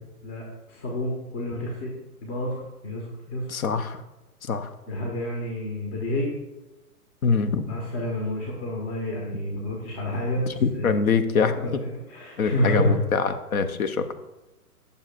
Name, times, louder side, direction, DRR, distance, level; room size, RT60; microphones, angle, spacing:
voice 1, 0.2-1.9 2.2-3.5 4.9-6.3 7.7-11.1 11.4-13.0, left 1 dB, 40° left, -1 dB, 1.7 m, -29 dB
voice 2, 3.5-4.0 4.4-4.7 7.2-7.6 10.5-11.8 12.4-14.1, left 5 dB, 65° left, 9 dB, 0.9 m, -24 dB
9.6 x 6.9 x 2.6 m, 1.0 s
figure-of-eight pair, 125°, 46 cm